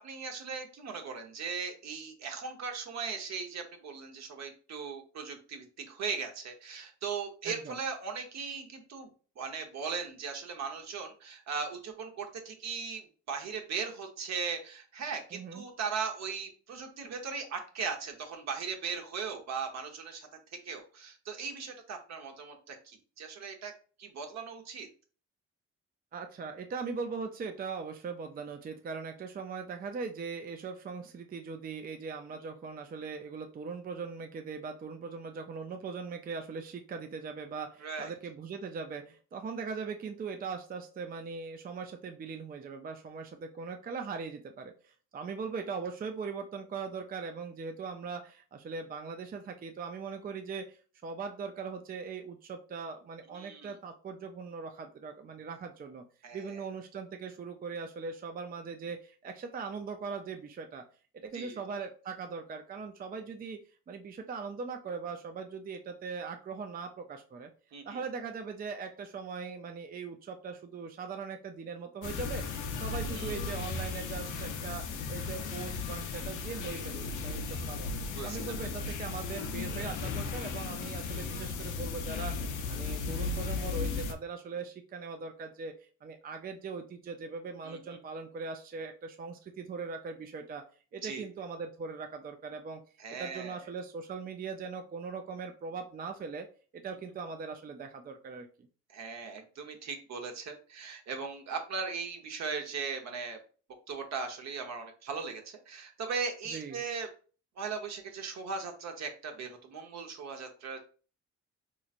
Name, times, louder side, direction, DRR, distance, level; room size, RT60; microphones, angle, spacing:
voice 1, 0.0-9.1 9.4-20.3 20.6-23.7 24.0-24.9 37.8-38.1 53.3-53.7 56.2-56.6 61.3-61.6 67.7-68.0 73.1-73.3 78.1-78.6 87.6-88.0 91.0-91.3 93.0-93.6 98.9-103.4 103.9-107.1 107.6-110.8, right 5 dB, 65° right, 4 dB, 1.0 m, -38 dB
voice 2, 7.4-7.8 15.3-15.6 26.1-56.0 56.3-60.8 61.2-63.6 63.9-67.5 67.8-72.4 72.8-77.9 78.2-90.6 90.9-92.8 93.2-96.5 96.7-98.5 106.5-106.8, right 5 dB, 30° right, 5 dB, 0.4 m, -40 dB
sound 1, 72.0-84.1, left 4 dB, 85° left, 0.7 m, -36 dB
4.1 x 3.1 x 2.4 m, 0.39 s
cardioid pair, 90°, 30 cm